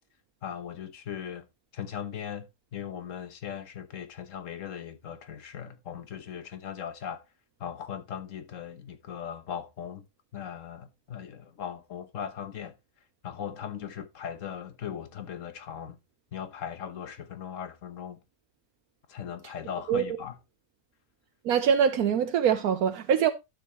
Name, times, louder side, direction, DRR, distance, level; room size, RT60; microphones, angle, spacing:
voice 1, 0.4-1.4 1.7-2.5 2.7-7.2 7.6-10.0 10.3-12.7 13.2-16.0 16.3-18.2 19.1-20.4, left 8 dB, 60° left, 1.4 m, -38 dB
voice 2, 21.4-23.3, right 8 dB, 75° right, 1.2 m, -23 dB
12.0 x 6.5 x 3.0 m
omnidirectional pair, 1.6 m